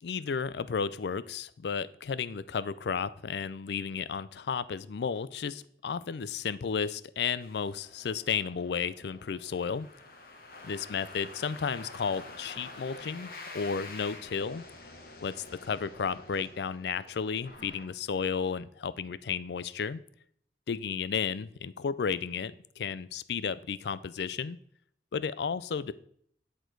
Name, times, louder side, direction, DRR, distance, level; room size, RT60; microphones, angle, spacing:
voice 1, 0.0-9.9 10.6-14.6 15.2-20.0 20.7-24.6 25.1-25.9, left 6 dB, 75° left, 17 dB, 0.4 m, -33 dB
sound 1, 7.4-18.6, left 3 dB, 55° left, 1.4 m, -48 dB
10.5 x 4.3 x 4.5 m, 0.66 s
head